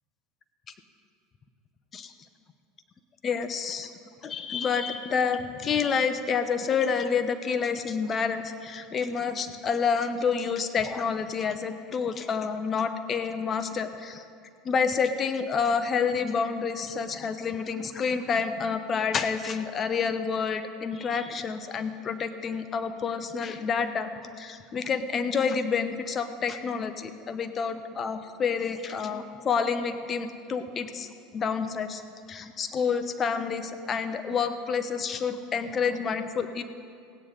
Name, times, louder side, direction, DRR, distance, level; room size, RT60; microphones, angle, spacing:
voice 1, 3.2-3.9 4.2-14.2 14.6-32.0 32.3-36.6, left 6 dB, 35° left, 9 dB, 0.9 m, -28 dB
16.0 x 9.7 x 5.1 m, 2.4 s
hypercardioid pair, 80°, 0 cm